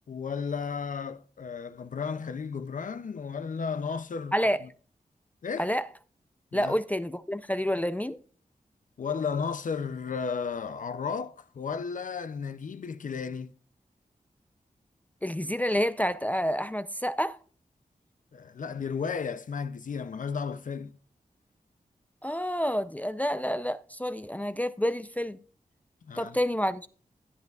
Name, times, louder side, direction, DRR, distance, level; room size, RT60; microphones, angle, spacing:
voice 1, 0.1-4.4 4.6-4.7 5.4-5.7 6.5-6.7 9.0-13.5 18.3-20.9 26.1-26.4, left 5 dB, 65° left, 0.5 m, -34 dB
voice 2, 6.5-8.2 15.2-17.4 22.2-25.4 26.2-26.9, equal, 10° left, 0.4 m, -28 dB
15.5 x 8.1 x 2.4 m
wide cardioid pair, 95°, 15 cm